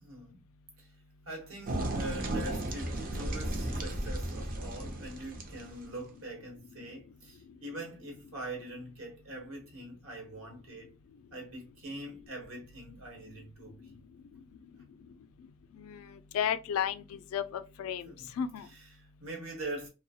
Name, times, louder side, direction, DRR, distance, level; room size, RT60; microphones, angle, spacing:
voice 1, 0.0-0.4 0.8-0.9 1.3-10.9 11.3-13.9 18.0-18.3 18.6-19.9, right 1 dB, 70° right, 1.0 m, -43 dB
sound 1, 1.7-6.0, right 1 dB, 45° right, 0.5 m, -35 dB
voice 2, 16.3-18.0 18.4-18.6, left 8 dB, 85° left, 0.3 m, -32 dB
2.2 x 2.0 x 2.7 m
head